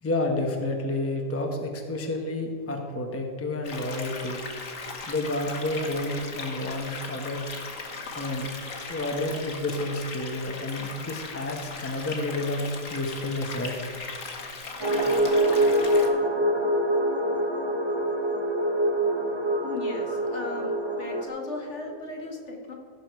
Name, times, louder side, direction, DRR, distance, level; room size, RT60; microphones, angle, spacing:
voice 1, 0.0-4.4 5.1-7.4 8.1-8.5 8.9-13.8, left 2 dB, 10° left, 2 dB, 1.0 m, -30 dB
sound 1, 3.6-16.1, left 4 dB, 75° left, 1.7 m, -38 dB
sound 2, 14.8-21.3, right 1 dB, 20° right, 1.1 m, -25 dB
voice 2, 19.6-20.7 21.0-22.7, left 2 dB, 60° left, 0 dB, 2.0 m, -36 dB
15.5 x 6.2 x 4.7 m, 2.4 s
omnidirectional pair, 1.4 m